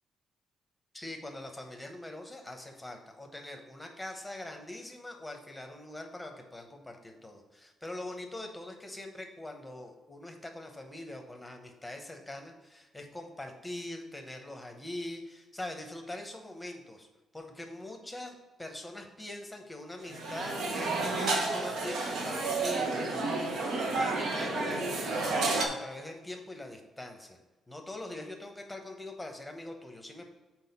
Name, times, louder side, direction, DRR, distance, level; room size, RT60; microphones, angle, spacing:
voice 1, 0.9-17.1 17.3-18.3 18.6-23.3 23.9-27.4 27.7-30.3, left 1 dB, 5° left, 3 dB, 0.9 m, -43 dB
sound 1, 20.0-25.7, right 3 dB, 70° right, 1.1 m, -31 dB
6.3 x 4.5 x 5.6 m, 1.2 s
cardioid pair, 155°, 0 cm